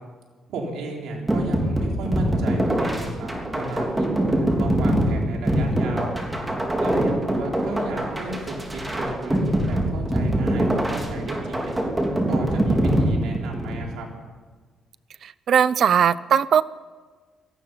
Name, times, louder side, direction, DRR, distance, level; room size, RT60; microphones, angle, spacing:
voice 1, 0.5-6.1 6.8-11.8 12.3-14.1, right 2 dB, 80° right, -1 dB, 4.2 m, -34 dB
sound 1, 1.3-13.8, right 1 dB, 15° right, 3.4 m, -23 dB
voice 2, 15.5-16.6, right 8 dB, 60° right, 18 dB, 0.6 m, -18 dB
18.0 x 14.0 x 5.7 m, 1.4 s
cardioid pair, 90°, 0 cm